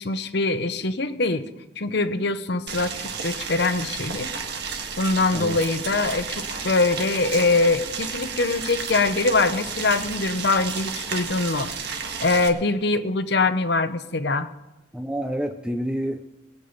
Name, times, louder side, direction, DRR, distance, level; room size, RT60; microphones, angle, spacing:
voice 1, 0.0-1.5 1.8-2.9 3.2-4.3 5.0-11.8 12.2-14.5, left 3 dB, 60° left, 11 dB, 0.9 m, -23 dB
Boiling, 2.7-12.5, right 6 dB, 60° right, 1.5 m, -32 dB
voice 2, 14.9-16.4, equal, 5° right, 5 dB, 0.5 m, -28 dB
21.5 x 8.6 x 5.1 m, 1.0 s
head